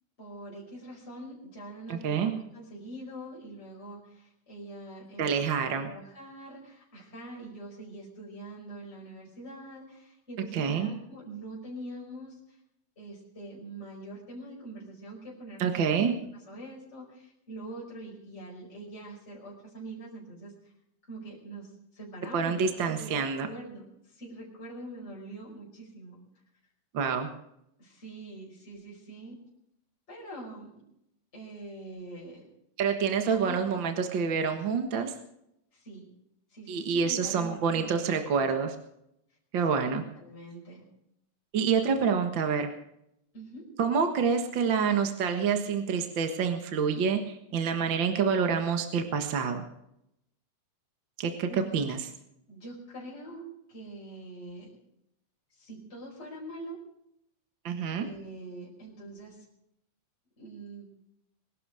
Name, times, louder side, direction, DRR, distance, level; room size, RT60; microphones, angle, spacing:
voice 1, 0.2-12.6 13.0-20.7 21.1-23.1 23.4-26.2 27.8-29.4 30.1-30.8 31.3-32.5 33.3-33.6 35.7-36.1 36.5-38.5 39.7-39.8 40.2-40.9 43.3-43.6 51.5-51.8 52.5-54.7 55.5-56.8 58.0-59.5 60.4-60.9, right 1 dB, 20° left, -5 dB, 5.4 m, -44 dB
voice 2, 1.9-2.3 5.2-5.9 10.5-10.9 15.6-16.1 22.3-23.5 26.9-27.3 32.8-35.1 36.7-38.8 39.5-40.0 41.5-42.7 43.8-49.7 51.2-52.0 57.6-58.1, right 6 dB, 45° right, 6 dB, 1.9 m, -27 dB
22.0 x 12.5 x 5.0 m, 0.78 s
omnidirectional pair, 3.4 m